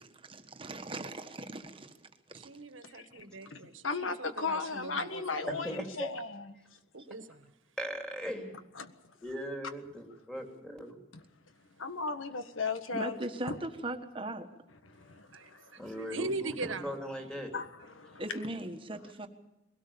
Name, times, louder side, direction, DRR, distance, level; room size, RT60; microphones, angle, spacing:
voice 1, 0.3-1.9 2.3-2.5 12.9-14.5 18.2-19.3, right 1 dB, 25° right, 6 dB, 1.4 m, -39 dB
voice 2, 2.3-5.9 6.9-7.5 15.3-17.0, right 3 dB, 85° right, 9 dB, 1.7 m, -41 dB
voice 3, 2.9-6.5 8.8-8.9 11.8-13.2 13.5-13.6 14.9-15.8 17.5-17.7 17.9-18.2, left 4 dB, 90° left, 9 dB, 1.6 m, -36 dB
voice 4, 5.5-6.1 7.8-8.5 9.2-11.0 15.8-17.5, equal, 5° left, 1 dB, 3.0 m, -39 dB
21.5 x 17.5 x 7.0 m, 0.93 s
head